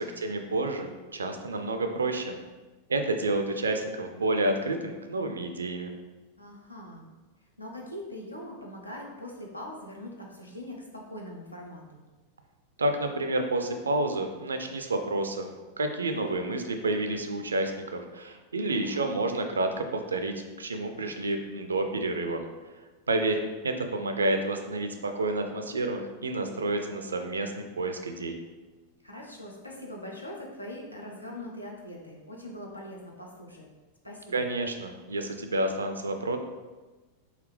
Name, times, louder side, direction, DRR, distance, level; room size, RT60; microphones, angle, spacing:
voice 1, 0.0-2.4 2.9-5.9 12.8-22.4 23.1-28.4 34.3-36.4, right 2 dB, 75° right, 6 dB, 0.4 m, -29 dB
voice 2, 6.4-7.1 7.6-12.0 18.7-19.0 29.0-33.7 34.0-34.5, left 1 dB, 85° left, -1 dB, 0.6 m, -42 dB
4.0 x 2.7 x 3.2 m, 1.2 s
figure-of-eight pair, 90°, 0 cm